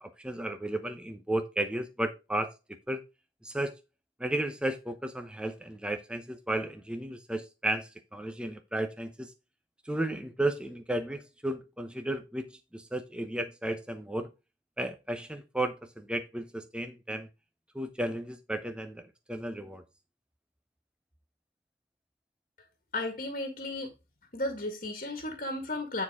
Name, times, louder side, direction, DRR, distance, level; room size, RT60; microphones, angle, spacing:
voice 1, 0.0-2.5 2.9-3.0 3.4-3.7 4.2-9.3 9.8-14.3 14.8-17.3 17.7-19.8, right 1 dB, 5° right, 0.8 m, -34 dB
voice 2, 22.9-23.9 24.3-26.0, left 2 dB, 45° left, 1.7 m, -34 dB
9.8 x 4.3 x 4.7 m
head